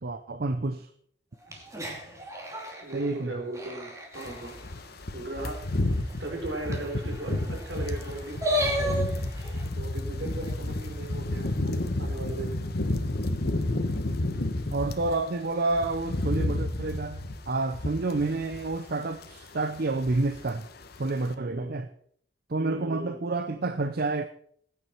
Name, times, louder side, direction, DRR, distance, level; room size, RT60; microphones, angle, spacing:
voice 1, 0.0-0.9 2.9-3.4 14.7-20.7 21.0-21.9 22.5-24.2, right 3 dB, 55° right, 10 dB, 0.7 m, -29 dB
sound 1, 1.4-4.6 5.0-5.1 5.4-5.5 5.7-9.7, equal, 15° right, 2.7 m, -34 dB
voice 2, 2.8-3.9 4.1-4.8 5.1-5.6 6.2-12.6 21.4-21.7 22.6-23.2, right 2 dB, 75° right, 2 dB, 3.9 m, -37 dB
sound 2, 4.2-15.2 15.5-18.9 19.2-19.4 19.8-20.6 20.8-21.0, left 1 dB, 60° left, 1.2 m, -31 dB
19.5 x 9.5 x 4.5 m, 0.64 s
head